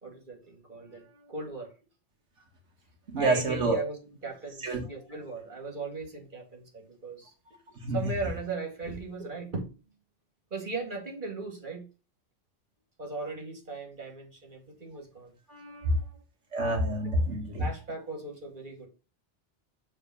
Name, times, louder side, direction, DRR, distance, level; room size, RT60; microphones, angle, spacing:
voice 1, 0.0-1.7 3.2-4.0 4.2-7.3 7.9-9.6 10.5-11.9 13.0-16.1 17.6-18.9, right 3 dB, 45° right, 2.3 m, -38 dB
voice 2, 3.1-3.8 4.6-4.8 7.8-8.0 16.5-17.7, right 2 dB, 85° right, 1.6 m, -27 dB
7.1 x 3.6 x 5.5 m
omnidirectional pair, 1.2 m